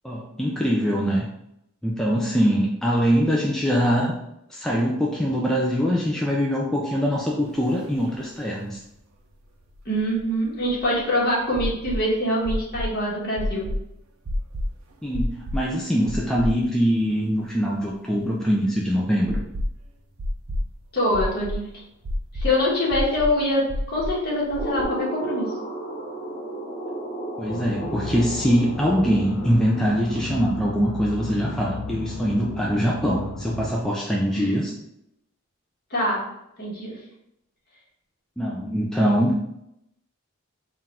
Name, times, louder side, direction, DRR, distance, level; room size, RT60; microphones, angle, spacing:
voice 1, 0.0-1.3 1.8-4.2 4.5-8.8 15.0-19.4 27.4-34.7 38.4-39.4, equal, 5° left, -3 dB, 0.3 m, -23 dB
sound 1, 7.8-7.9 8.1-8.2 9.7-11.0 11.6-12.0 12.4-12.9 13.4-13.8 14.3-14.7 15.1-15.6 16.1-16.9 17.2-17.3 19.3-19.8 20.2-20.7 21.1-21.6 22.0-22.5 22.9-23.3 23.7-24.1 24.5-24.8, left 1 dB, 80° right, 0.6 m, -28 dB
voice 2, 9.8-13.6 20.9-21.6 22.3-25.5 34.3-34.5 35.9-36.2 36.6-37.0, left 1 dB, 45° left, -5 dB, 1.4 m, -24 dB
sound 2, 24.6-30.4, right 1 dB, 30° left, 1.5 m, -33 dB
sound 3, 27.5-33.7, left 2 dB, 80° left, 0.6 m, -34 dB
3.8 x 2.5 x 4.2 m, 0.82 s
head